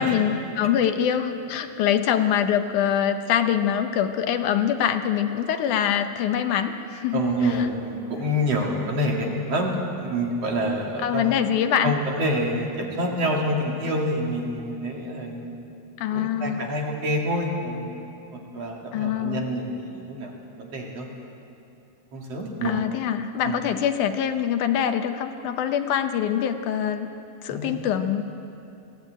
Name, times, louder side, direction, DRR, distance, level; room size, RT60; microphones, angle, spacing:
voice 1, 0.0-7.2 11.0-11.9 16.0-16.7 18.9-19.5 22.6-27.1 27.4-28.2, left 9 dB, 75° left, 8 dB, 2.3 m, -24 dB
voice 2, 7.1-11.3 11.8-15.5 16.1-21.1 22.1-22.7 23.4-23.7 27.5-27.8, equal, 50° right, -1 dB, 3.3 m, -27 dB
21.5 x 15.5 x 9.1 m, 2.7 s
omnidirectional pair, 3.7 m